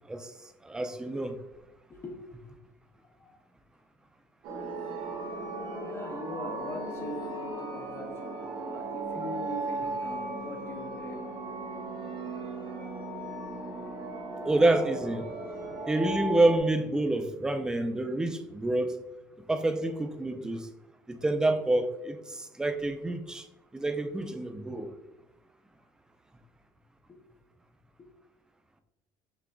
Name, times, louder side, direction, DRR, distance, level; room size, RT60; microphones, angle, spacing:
voice 1, 0.6-1.4 14.4-15.2 15.9-19.0 19.5-20.7 21.1-23.4 23.7-24.9, right 2 dB, 5° right, 0.3 m, -27 dB
voice 2, 1.9-2.6 3.2-3.3 5.8-11.4 27.1-27.2 28.0-28.1, left 1 dB, 25° left, 0.7 m, -42 dB
sound 1, 4.4-16.6, right 2 dB, 70° right, 1.1 m, -36 dB
5.9 x 3.5 x 2.3 m
cardioid pair, 140°, 9 cm